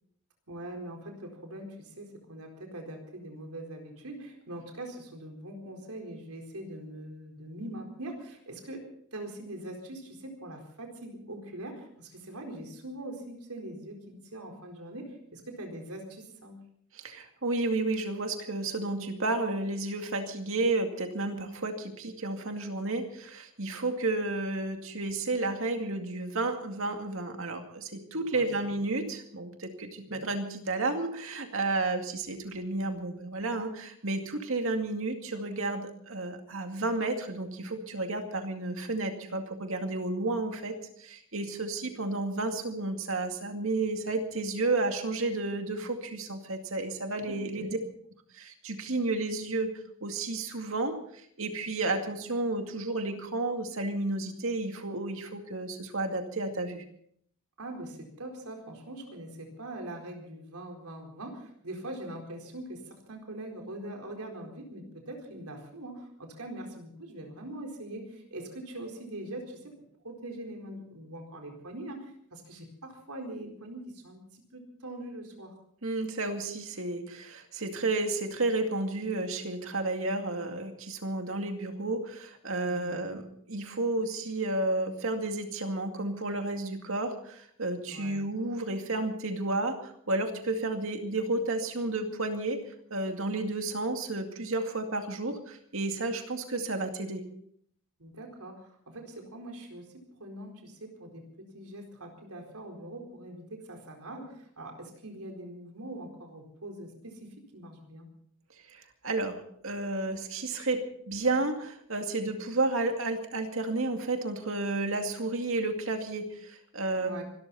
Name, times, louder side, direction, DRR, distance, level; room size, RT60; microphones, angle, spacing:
voice 1, 0.5-8.8 9.1-16.5 28.3-28.8 30.0-30.3 47.2-47.7 57.6-69.7 70.0-75.5 82.6-83.0 87.9-88.2 98.0-101.2 101.5-108.1 116.9-117.2, right 1 dB, 90° right, 2 dB, 4.3 m, -42 dB
voice 2, 16.9-47.8 48.3-49.7 50.0-51.0 51.4-56.8 75.8-92.6 92.9-97.2 108.7-117.1, right 2 dB, 65° right, 5 dB, 2.3 m, -32 dB
25.5 x 13.5 x 4.2 m, 0.65 s
head